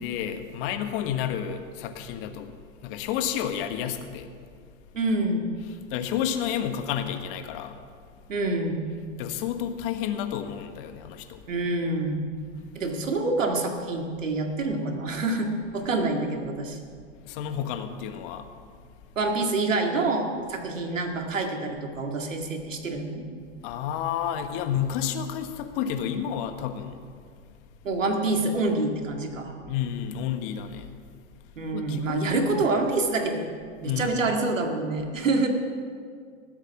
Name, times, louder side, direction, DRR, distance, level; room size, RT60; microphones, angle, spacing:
voice 1, 0.0-2.5 2.8-4.3 5.7-7.7 9.2-11.4 17.2-18.5 23.6-27.0 29.7-31.0 31.7-32.6 33.8-34.1, left 9 dB, 45° left, 8 dB, 1.3 m, -30 dB
voice 2, 4.9-5.5 8.3-8.9 11.5-12.3 12.7-16.8 19.2-23.2 27.8-29.6 31.6-33.5 33.8-35.5, right 2 dB, 85° right, 3 dB, 2.1 m, -27 dB
19.5 x 8.1 x 5.9 m, 2.1 s
hypercardioid pair, 115°, 37 cm